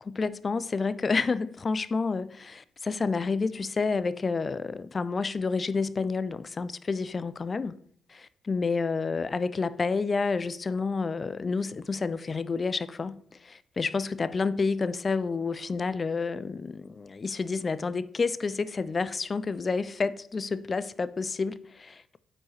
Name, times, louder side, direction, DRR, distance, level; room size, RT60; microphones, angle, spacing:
voice 1, 0.1-7.8 8.1-22.2, left 4 dB, 35° left, 0.3 m, -29 dB
8.6 x 4.7 x 3.1 m
cardioid pair, 90°, 0 cm